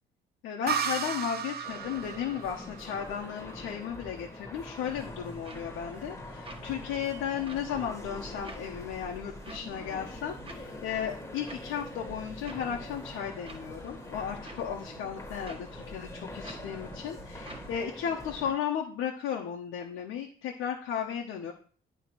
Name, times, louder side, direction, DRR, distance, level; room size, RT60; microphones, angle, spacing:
voice 1, 0.4-21.5, left 8 dB, 90° left, 0 dB, 0.9 m, -35 dB
sound 1, 0.7-4.2, right 7 dB, 55° right, 0.7 m, -35 dB
sound 2, 1.6-18.5, left 2 dB, 15° left, 1.5 m, -44 dB
sound 3, 4.7-17.9, right 2 dB, 25° right, 1.5 m, -48 dB
8.6 x 3.1 x 6.0 m, 0.43 s
cardioid pair, 90°, 20 cm